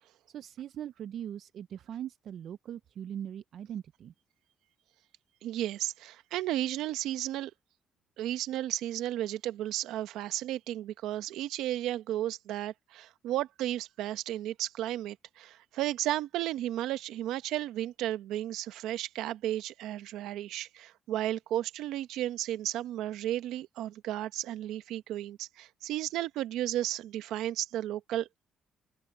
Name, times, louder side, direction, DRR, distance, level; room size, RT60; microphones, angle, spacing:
voice 1, 0.3-4.1, right 10 dB, 70° right, 0.4 m, -40 dB
voice 2, 5.4-7.5 8.2-28.3, right 13 dB, 90° right, 0.9 m, -33 dB
cardioid pair, 90°, 0 cm